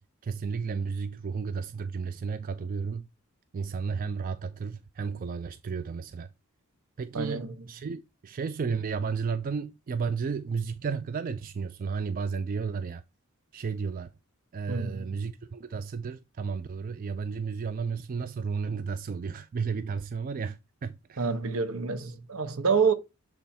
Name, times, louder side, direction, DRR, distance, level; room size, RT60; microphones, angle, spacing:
voice 1, 0.2-3.1 3.5-6.3 7.0-13.0 13.5-14.1 14.5-21.3, right 5 dB, 40° right, 0.3 m, -33 dB
voice 2, 7.1-7.5 14.7-15.2 21.2-22.9, right 5 dB, 75° right, 0.8 m, -27 dB
6.6 x 3.5 x 4.2 m
head